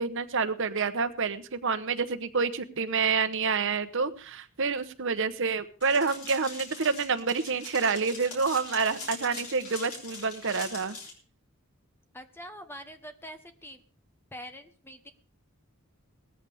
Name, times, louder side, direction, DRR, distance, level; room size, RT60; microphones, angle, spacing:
voice 1, 0.0-11.0, right 5 dB, 60° right, 11 dB, 1.1 m, -28 dB
sound 1, 5.8-11.1, left 3 dB, 90° left, 5.2 m, -42 dB
voice 2, 12.1-13.8 14.3-15.1, equal, 10° left, 9 dB, 1.1 m, -44 dB
18.5 x 14.0 x 3.6 m, 0.39 s
head